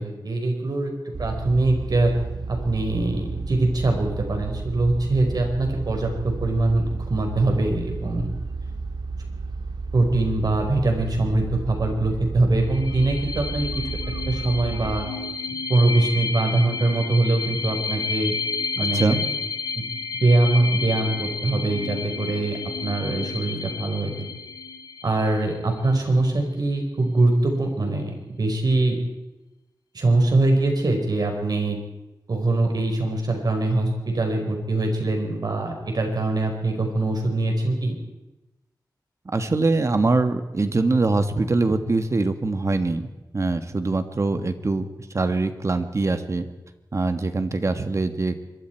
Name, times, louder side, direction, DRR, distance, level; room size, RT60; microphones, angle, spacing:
voice 1, 0.0-2.1 2.5-8.3 9.9-13.9 14.3-15.1 15.7-18.3 18.8-19.2 19.7-19.8 20.2-24.1 25.0-29.0 29.9-31.8 32.3-37.9, right 2 dB, 60° right, 3 dB, 4.8 m, -23 dB
sound 1, 1.1-15.0, right 3 dB, 80° right, 1.6 m, -32 dB
sound 2, 12.6-26.0, left 4 dB, 70° left, 1.9 m, -31 dB
voice 2, 39.3-43.1 43.3-44.9 45.1-46.5 46.9-48.3, right 3 dB, 40° right, 8 dB, 1.6 m, -23 dB
25.0 x 22.5 x 4.6 m, 1.0 s
wide cardioid pair, 100°, 8 cm